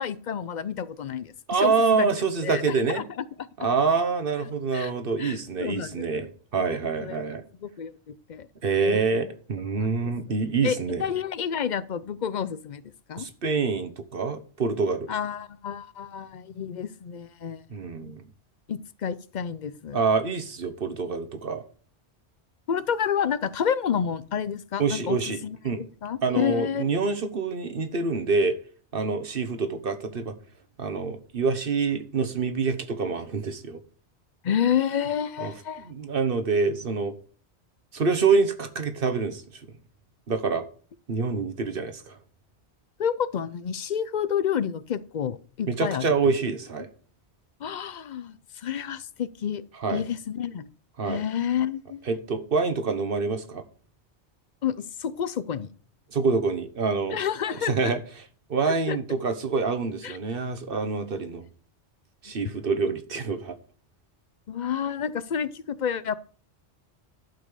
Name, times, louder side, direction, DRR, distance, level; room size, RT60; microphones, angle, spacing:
voice 1, 0.0-1.3 1.6-2.1 2.4-3.0 3.6-3.7 4.7-4.9 5.2-6.2 6.5-7.2 7.6-8.5 8.8-9.2 10.0-10.1 10.6-12.8 13.1-13.3 15.1-17.6 18.0-18.1 18.7-20.0 22.7-26.9 34.4-35.9 43.0-46.0 47.6-49.6 49.9-50.7 51.1-52.0 54.6-55.7 57.1-57.9 58.6-59.0 60.0-60.2 64.5-66.2, left 8 dB, 50° left, 0.6 m, -29 dB
voice 2, 1.5-3.1 3.6-7.4 8.6-11.0 13.2-15.1 17.7-18.2 19.9-21.6 24.8-25.9 26.2-28.6 28.9-30.4 30.8-33.8 35.4-35.5 35.9-37.1 37.9-39.4 40.3-40.6 41.1-42.2 45.7-46.9 49.8-50.0 51.0-51.2 52.1-53.6 56.1-57.2 57.6-58.0 58.5-61.4 62.2-63.6, right 4 dB, 55° right, 1.3 m, -26 dB
12.0 x 5.2 x 6.6 m
omnidirectional pair, 1.1 m